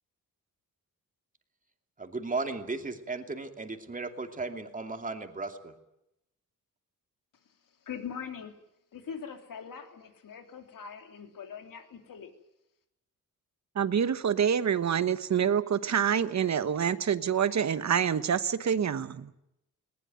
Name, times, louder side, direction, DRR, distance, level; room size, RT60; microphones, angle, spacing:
voice 1, 2.0-5.7, right 3 dB, 25° right, 6 dB, 2.7 m, -35 dB
voice 2, 7.9-8.5 8.9-12.3, left 7 dB, 70° left, 6 dB, 3.2 m, -42 dB
voice 3, 13.7-19.3, right 8 dB, 55° right, 13 dB, 1.2 m, -27 dB
20.0 x 19.5 x 9.3 m, 0.84 s
wide cardioid pair, 115°, 34 cm